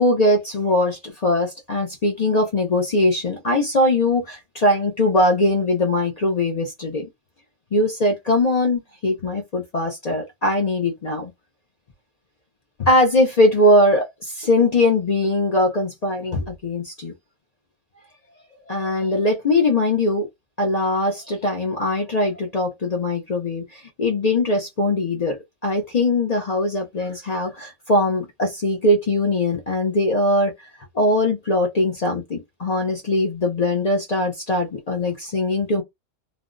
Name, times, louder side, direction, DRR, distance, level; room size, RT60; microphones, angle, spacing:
voice 1, 0.0-7.1 7.7-11.3 12.8-17.1 18.7-20.3 20.6-30.5 30.9-35.8, left 1 dB, 60° left, 0.4 m, -21 dB
3.3 x 2.0 x 2.5 m
omnidirectional pair, 1.4 m